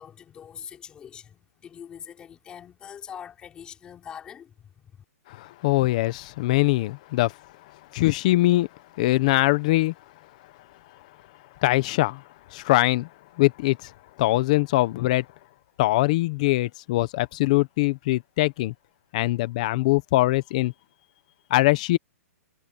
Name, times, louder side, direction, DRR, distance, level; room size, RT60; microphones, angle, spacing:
voice 1, 0.0-5.0, left 8 dB, 10° left, 4.8 m, -43 dB
voice 2, 5.3-7.3 7.9-8.7 9.0-9.9 11.6-12.2 12.5-13.1 13.4-13.9 14.2-15.2 15.8-18.7 19.1-20.7 21.5-22.0, left 19 dB, 25° left, 0.8 m, -22 dB
hypercardioid pair, 175°, 9 cm